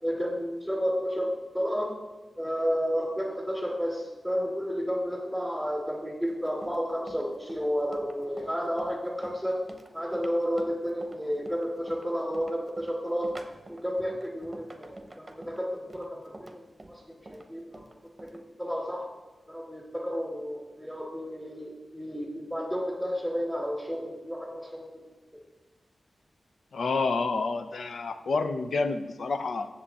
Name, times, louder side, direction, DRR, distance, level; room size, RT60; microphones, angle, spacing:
voice 1, 0.0-1.9 2.4-9.6 9.9-13.3 13.7-17.8 18.2-19.0 19.5-25.1, equal, ahead, -4 dB, 2.2 m, -31 dB
Run, 6.3-18.4, right 2 dB, 30° right, 0.9 m, -48 dB
voice 2, 26.7-29.7, left 3 dB, 75° left, 9 dB, 0.6 m, -29 dB
7.7 x 6.9 x 4.2 m, 1.2 s
cardioid pair, 70°, 0 cm